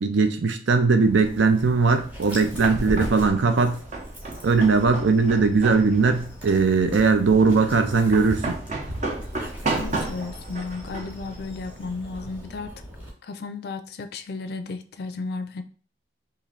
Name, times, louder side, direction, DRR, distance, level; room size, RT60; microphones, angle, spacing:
voice 1, 0.0-3.8 4.4-8.6, right 4 dB, 80° right, 0.6 m, -20 dB
Dog, 1.0-13.1, equal, 10° right, 0.9 m, -39 dB
sound 1, 2.0-12.4, right 2 dB, 40° right, 0.7 m, -34 dB
voice 2, 9.8-12.7 13.2-15.6, left 4 dB, 55° left, 0.4 m, -34 dB
3.1 x 2.6 x 3.9 m
head